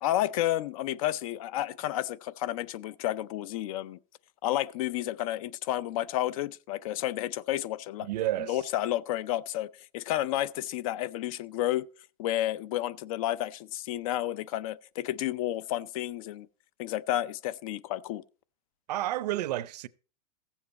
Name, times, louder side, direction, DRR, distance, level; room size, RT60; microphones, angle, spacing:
voice 1, 0.0-4.0 4.4-8.1 8.5-11.9 12.2-16.5 16.8-18.2, left 13 dB, 55° left, 0.5 m, -31 dB
voice 2, 8.0-8.6 18.9-19.9, right 14 dB, 75° right, 0.6 m, -30 dB
15.0 x 7.3 x 4.1 m
supercardioid pair, 150°, 21 cm